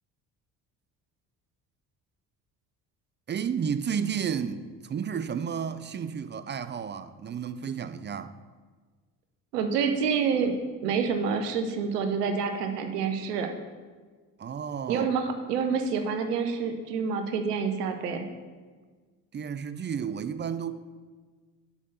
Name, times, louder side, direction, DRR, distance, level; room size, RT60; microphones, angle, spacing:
voice 1, 3.3-8.4 14.4-15.1 19.3-20.7, right 7 dB, 25° right, 0.4 m, -32 dB
voice 2, 9.5-10.6 10.8-13.5 14.9-18.3, right 6 dB, 85° right, 0.8 m, -27 dB
6.2 x 5.5 x 7.0 m
hypercardioid pair, 50°, 46 cm